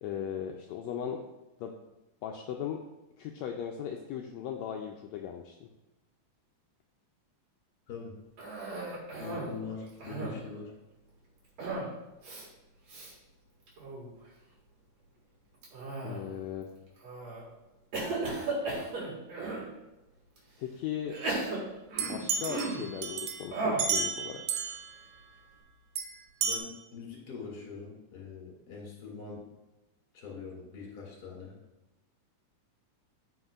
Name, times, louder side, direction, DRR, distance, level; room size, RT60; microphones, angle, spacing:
voice 1, 0.0-1.2 1.6-1.7 2.2-2.8 3.2-5.7 16.0-16.7 20.6-21.2 22.0-24.7, left 9 dB, 85° left, 2 dB, 1.6 m, -37 dB
Cough, 8.4-9.6 9.9-10.5 11.6-11.9 12.2-12.4 12.9-13.1 13.7-14.1 15.6-16.4 17.0-17.4 17.9-19.7 20.4-20.5 21.1-22.9 23.5-23.9, right 2 dB, 55° right, 2.8 m, -35 dB
voice 2, 9.2-10.7 26.4-29.5 30.1-31.6, left 5 dB, 35° left, -2 dB, 2.3 m, -43 dB
sound 1, 22.0-24.9 26.0-26.1 26.4-26.6, right 6 dB, 80° right, 2.2 m, -32 dB
13.5 x 5.1 x 2.4 m, 1.0 s
omnidirectional pair, 3.6 m